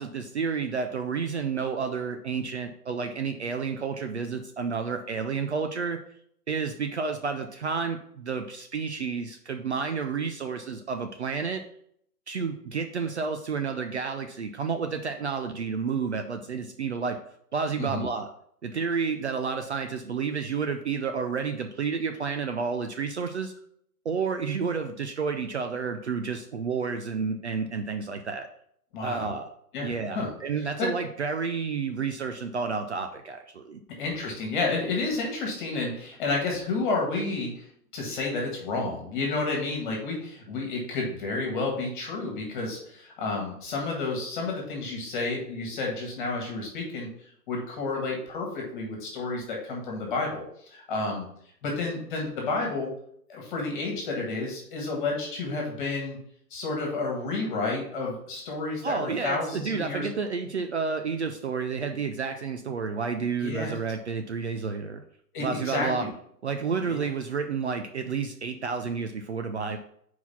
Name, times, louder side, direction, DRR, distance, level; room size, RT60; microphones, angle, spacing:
voice 1, 0.0-6.0 6.5-11.6 12.3-17.2 17.5-18.3 18.6-23.5 24.0-28.5 29.0-29.5 29.8-33.8 58.8-65.0 65.4-66.1 66.4-69.8, right 5 dB, 45° right, 6 dB, 0.5 m, -30 dB
voice 2, 28.9-29.4 29.7-30.3 30.8-30.9 34.0-37.7 37.9-47.1 47.5-50.4 50.7-51.2 51.6-52.9 53.3-56.2 56.5-60.1 63.4-63.7 65.3-66.1 66.9-67.0, left 3 dB, 30° left, 0 dB, 1.7 m, -30 dB
4.7 x 4.0 x 5.4 m, 0.67 s
hypercardioid pair, 150°, 48 cm